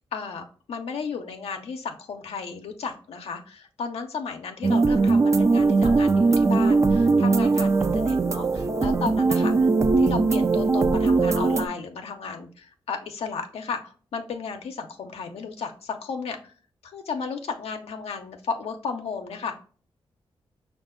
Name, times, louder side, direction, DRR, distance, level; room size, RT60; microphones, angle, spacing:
voice 1, 0.0-9.5 10.0-16.5 16.8-19.6, left 5 dB, 80° left, 4 dB, 0.6 m, -34 dB
sound 1, 4.6-11.7, right 3 dB, 30° right, 0.4 m, -20 dB
5.4 x 2.4 x 3.7 m, 0.40 s
cardioid pair, 85°, 10 cm